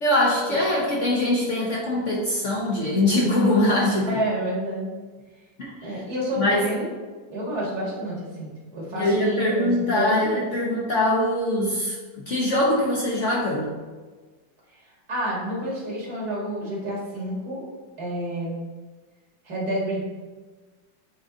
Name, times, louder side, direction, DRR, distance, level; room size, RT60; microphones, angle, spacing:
voice 1, 0.0-4.1 5.6-5.7 6.4-6.6 9.0-12.0 12.3-13.7, left 1 dB, 50° left, -4 dB, 1.0 m, -22 dB
voice 2, 4.1-4.9 5.8-6.9 7.3-10.5 15.1-17.7 18.0-18.6 19.5-20.0, equal, 55° right, -4 dB, 2.1 m, -29 dB
7.9 x 3.8 x 3.8 m, 1.3 s
omnidirectional pair, 2.0 m